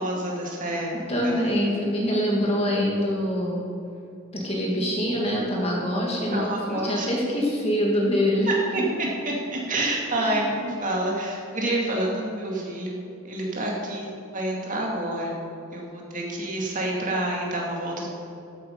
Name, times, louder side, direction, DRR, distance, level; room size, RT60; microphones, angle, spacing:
voice 1, 0.0-0.9 1.2-1.3 6.3-7.1 8.5-15.4 15.7-18.1, right 1 dB, 35° right, -2 dB, 2.3 m, -28 dB
voice 2, 1.1-3.6 4.3-8.5 9.7-9.9 10.2-10.4, equal, 30° left, -3 dB, 2.3 m, -25 dB
13.0 x 9.1 x 5.5 m, 2.7 s
head